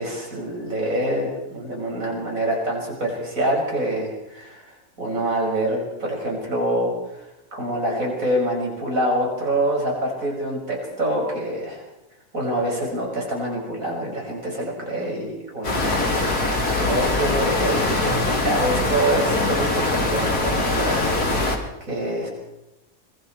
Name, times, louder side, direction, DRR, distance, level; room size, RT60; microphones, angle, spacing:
voice 1, 0.0-7.2 7.5-11.8 12.3-21.4 21.8-22.3, right 1 dB, 60° right, -1 dB, 6.8 m, -26 dB
sound 1, 15.6-21.6, left 2 dB, 85° left, 3.8 m, -22 dB
25.5 x 24.0 x 4.7 m, 0.93 s
omnidirectional pair, 1.6 m